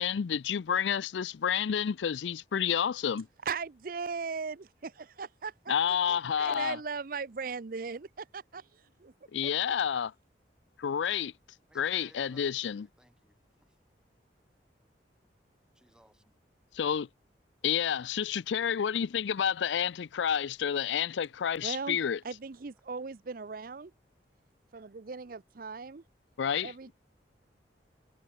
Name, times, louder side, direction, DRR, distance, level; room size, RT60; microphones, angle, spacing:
voice 1, 0.0-3.3 5.7-6.8 9.3-10.1 10.8-11.3 11.8-12.9 16.7-17.1 17.6-22.2 26.4-26.7, left 8 dB, 90° left, 0.4 m, -29 dB
voice 2, 3.4-9.1 9.4-9.5 21.6-22.0 22.2-23.9 24.7-26.0 26.6-26.9, right 5 dB, 50° right, 0.6 m, -38 dB
voice 3, 11.7-13.8 15.7-16.4, equal, 5° right, 3.5 m, -61 dB
head